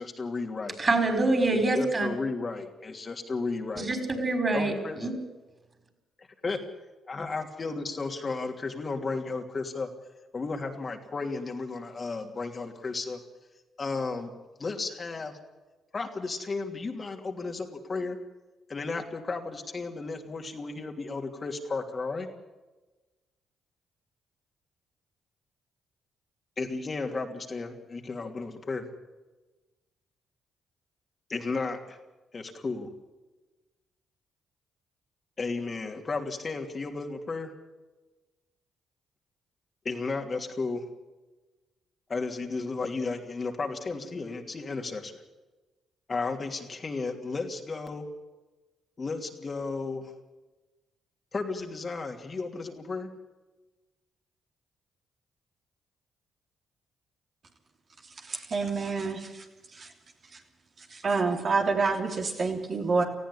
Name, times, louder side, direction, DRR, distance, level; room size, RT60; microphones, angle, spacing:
voice 1, 0.0-0.8 1.6-3.9 4.5-5.1 6.2-6.6 7.1-9.9 10.3-13.2 13.8-14.3 14.6-15.4 15.9-18.2 18.7-22.3 26.6-28.9 31.3-32.0 32.3-32.9 35.4-37.5 39.8-40.8 42.1-45.2 46.1-48.1 49.0-50.1 51.3-53.1, left 3 dB, 40° left, 3 dB, 3.0 m, -33 dB
voice 2, 0.8-2.1 3.8-5.1, right 2 dB, 35° right, 7 dB, 5.8 m, -25 dB
voice 3, 58.2-59.4 59.7-59.9 60.3-60.4 60.9-63.0, right 4 dB, 50° right, 2 dB, 3.3 m, -28 dB
19.0 x 14.5 x 10.0 m, 1.2 s
supercardioid pair, 60°, 0 cm